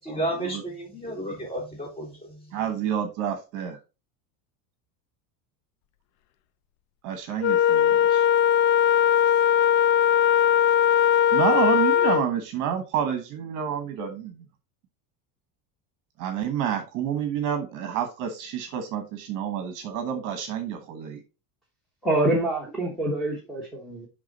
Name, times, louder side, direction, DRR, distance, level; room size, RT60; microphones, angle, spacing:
voice 1, 0.0-2.6, right 1 dB, 20° left, 4.1 m, -32 dB
voice 2, 2.5-3.8 7.0-8.2 11.3-14.4 16.2-21.2, right 9 dB, 40° right, 1.1 m, -29 dB
Wind instrument woodwind instrument, 7.4-12.3, left 10 dB, 60° left, 0.6 m, -19 dB
voice 3, 22.0-24.1, right 1 dB, ahead, 1.0 m, -26 dB
10.5 x 3.7 x 4.0 m
cardioid pair, 175°, 47 cm